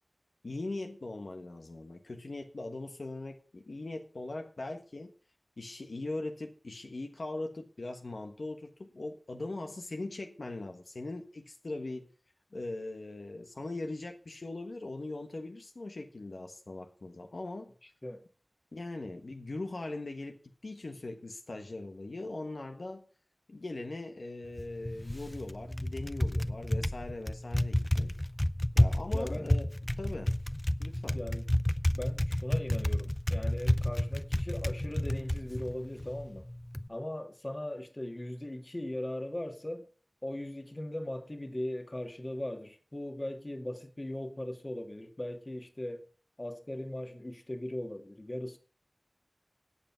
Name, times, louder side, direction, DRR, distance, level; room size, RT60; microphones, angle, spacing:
voice 1, 0.4-5.1 5.6-12.1 12.5-17.7 18.7-23.0 23.5-28.2 28.7-29.7 30.0-30.3 30.8-31.2, left 2 dB, 85° left, 1.4 m, -40 dB
voice 2, 17.8-18.3 29.1-29.5 31.1-31.4 31.9-36.5 36.9-39.9 40.2-46.1 46.4-48.6, left 1 dB, 40° left, 2.0 m, -39 dB
Typing, 24.4-36.9, left 1 dB, 20° left, 0.6 m, -31 dB
16.5 x 5.8 x 5.8 m
wide cardioid pair, 40°, 0 cm